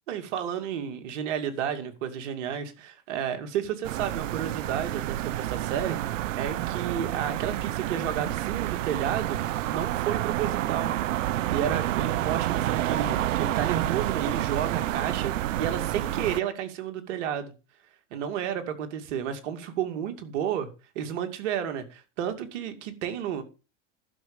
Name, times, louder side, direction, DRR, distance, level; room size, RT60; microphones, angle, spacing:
voice 1, 0.1-9.4 9.7-10.9 11.5-17.5 18.1-20.7 20.9-23.4, right 9 dB, 70° right, 2.5 m, -32 dB
sound 1, 3.8-16.4, right 14 dB, 90° right, 0.6 m, -29 dB
11.5 x 6.4 x 7.0 m
hypercardioid pair, 105°, 37 cm